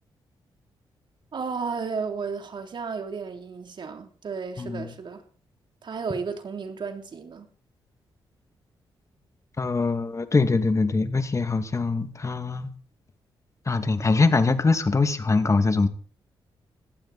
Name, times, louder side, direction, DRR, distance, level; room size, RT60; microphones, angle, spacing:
voice 1, 1.3-5.2 5.8-7.5, right 5 dB, 60° right, 3.4 m, -33 dB
voice 2, 4.6-4.9 9.6-12.7 13.7-15.9, left 3 dB, 35° left, 2.3 m, -23 dB
20.0 x 15.0 x 4.3 m
cardioid pair, 65°, 9 cm